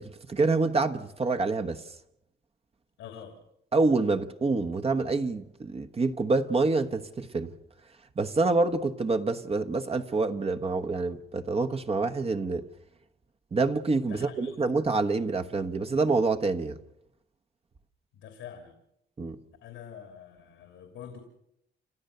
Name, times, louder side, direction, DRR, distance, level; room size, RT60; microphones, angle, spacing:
voice 1, 0.0-1.8 3.7-7.5 8.2-12.7 13.5-16.8 19.2-19.4, right 3 dB, 30° right, 1.2 m, -27 dB
voice 2, 3.0-3.4 14.1-14.6 18.1-18.7 19.6-21.2, left 8 dB, 85° left, 2.9 m, -45 dB
29.5 x 13.5 x 6.7 m
cardioid pair, 90°, 20 cm